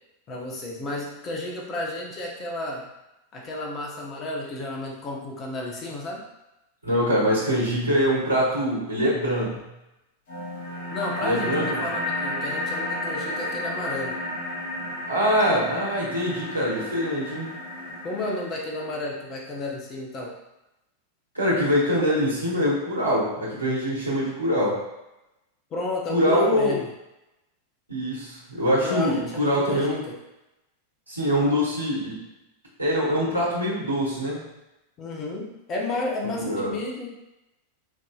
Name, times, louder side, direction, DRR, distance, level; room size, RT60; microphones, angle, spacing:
voice 1, 0.3-2.9 3.3-6.2 10.9-14.2 18.0-20.3 25.7-26.9 28.7-30.2 35.0-37.1, left 2 dB, 30° left, -1 dB, 0.8 m, -32 dB
voice 2, 6.8-9.7 11.2-11.8 15.1-17.5 21.3-24.8 26.1-26.8 27.9-30.1 31.1-32.2 32.8-34.4 36.4-36.7, equal, 80° right, -5 dB, 1.2 m, -24 dB
sound 1, 10.3-19.3, left 1 dB, 55° left, 0.9 m, -32 dB
4.6 x 2.7 x 2.3 m, 0.94 s
figure-of-eight pair, 90°, 0 cm